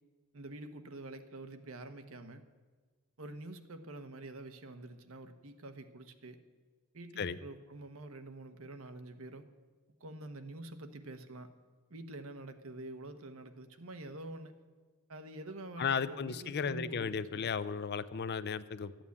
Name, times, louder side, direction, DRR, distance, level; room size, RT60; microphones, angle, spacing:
voice 1, 0.3-2.4 3.2-6.4 6.9-9.4 10.0-11.5 11.9-14.6 15.1-17.5, right 2 dB, 65° right, 8 dB, 1.0 m, -47 dB
voice 2, 15.8-19.0, left 6 dB, 50° left, 14 dB, 0.5 m, -35 dB
12.5 x 9.0 x 8.4 m, 1.4 s
head